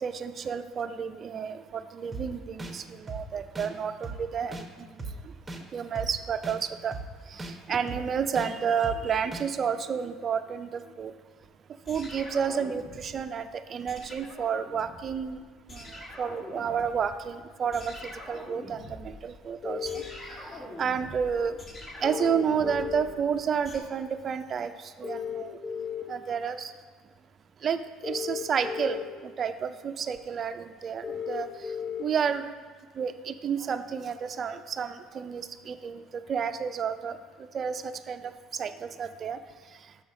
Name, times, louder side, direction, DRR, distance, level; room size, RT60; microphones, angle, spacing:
voice 1, 0.0-4.9 5.7-6.9 7.3-11.1 11.9-15.4 15.7-18.0 18.3-20.0 20.8-21.6 22.0-25.6 26.1-26.7 27.6-31.7 32.0-32.5 33.0-39.4, right 7 dB, 40° right, 8 dB, 0.4 m, -31 dB
sound 1, 2.1-2.2 2.6-2.7 3.1-3.2 3.5-3.7 4.0-4.2 4.5-4.6 5.0-5.1 5.5-5.6 6.0-6.1 6.4-6.6 6.9-7.0 7.4-7.5 7.9-8.0 8.4-8.5 8.8-9.0 9.3-9.4, right 3 dB, 15° right, 0.8 m, -37 dB
sound 2, 11.8-13.4 13.9-15.4 15.7-17.3 17.7-23.8, left 1 dB, 30° left, 1.3 m, -44 dB
sound 3, 19.6-20.0 22.0-23.0 25.0-26.0 28.0-29.0 31.0-32.0, left 7 dB, 50° left, 0.7 m, -34 dB
6.2 x 4.1 x 5.8 m, 1.5 s
supercardioid pair, 105°, 0 cm